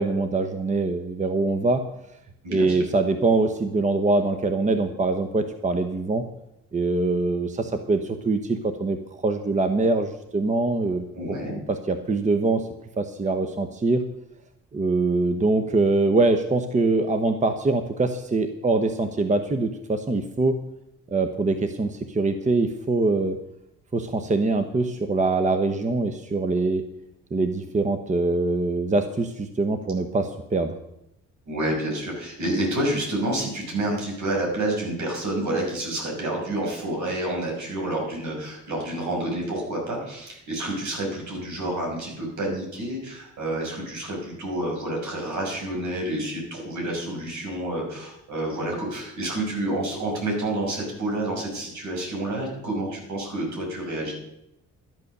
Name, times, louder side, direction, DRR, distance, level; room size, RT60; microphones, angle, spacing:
voice 1, 0.0-1.8 2.5-6.2 6.7-9.0 9.2-11.4 11.7-12.7 13.0-14.0 14.7-20.6 21.1-23.4 23.9-26.8 27.3-30.7, right 3 dB, 25° right, 8 dB, 1.0 m, -23 dB
voice 2, 2.4-2.8 11.1-11.6 31.5-54.1, right 1 dB, 70° right, 0 dB, 5.9 m, -29 dB
12.5 x 8.4 x 6.7 m, 0.82 s
cardioid pair, 90°, 30 cm